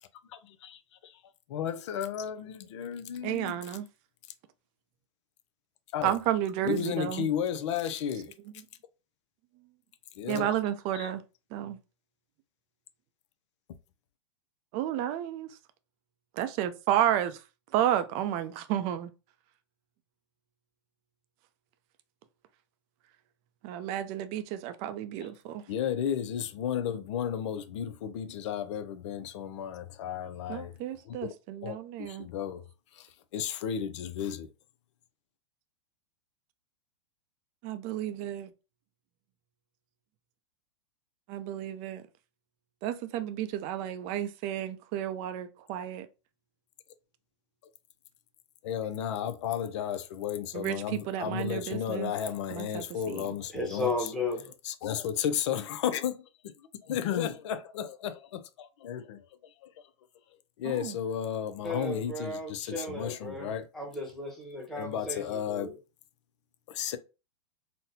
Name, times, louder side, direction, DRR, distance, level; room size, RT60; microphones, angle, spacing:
voice 1, 0.3-1.2 1.5-3.6 5.9-6.1 6.6-8.3 10.2-10.6 10.9-11.1 25.7-30.7 31.1-31.2 31.6-32.7 32.9-34.5 48.6-54.1 54.6-56.5 56.8-59.2 59.6-59.7 60.6-63.7 64.7-65.7 66.7-67.0, left 9 dB, 65° left, 0.5 m, -33 dB
voice 2, 3.2-3.9 6.0-7.3 10.3-11.2 11.5-11.8 14.7-15.6 16.3-17.4 17.7-19.1 23.6-25.7 30.5-32.3 37.6-38.5 41.3-42.0 42.8-46.1 50.5-52.1 52.5-53.3 60.6-61.0, right 11 dB, 40° right, 0.4 m, -32 dB
voice 3, 53.5-54.5 61.6-65.7, left 2 dB, ahead, 1.0 m, -35 dB
4.0 x 2.1 x 2.7 m
hypercardioid pair, 120°, 16 cm